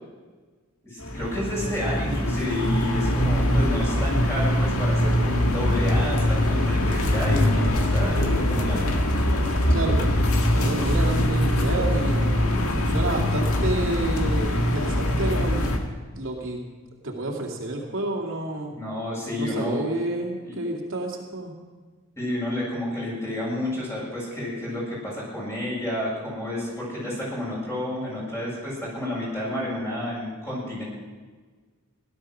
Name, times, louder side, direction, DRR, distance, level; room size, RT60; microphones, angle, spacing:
voice 1, 0.8-9.1 18.7-19.8 20.4-20.5 22.2-30.8, left 1 dB, 15° left, -5 dB, 6.8 m, -30 dB
sound 1, 1.0-15.8, left 1 dB, 90° left, 1.9 m, -23 dB
voice 2, 9.7-10.1 10.5-12.4 12.9-15.7 16.1-16.6 17.0-18.7 19.4-21.5, right 2 dB, 65° right, -1 dB, 2.5 m, -30 dB
17.0 x 12.0 x 6.3 m, 1.4 s
head